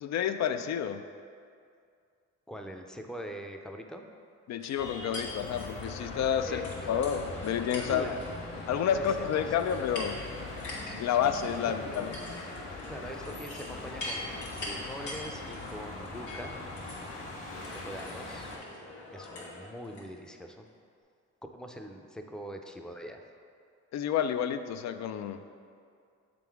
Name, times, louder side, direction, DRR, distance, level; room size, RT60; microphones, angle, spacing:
voice 1, 0.0-1.0 4.5-6.6 6.9-8.1 8.7-10.2 11.0-12.1 23.9-25.4, left 8 dB, 65° left, 10 dB, 0.4 m, -30 dB
voice 2, 2.5-4.0 6.5-6.9 7.9-8.3 8.8-9.9 11.6-12.1 12.9-16.6 17.6-18.5 19.1-20.7 21.5-23.2, equal, ahead, 3 dB, 0.5 m, -43 dB
sound 1, 4.6-20.1, left 2 dB, 90° left, 1.5 m, -44 dB
sound 2, 4.8-18.6, left 2 dB, 45° left, 1.5 m, -42 dB
6.9 x 3.8 x 4.6 m, 2.3 s
cardioid pair, 90°, 30 cm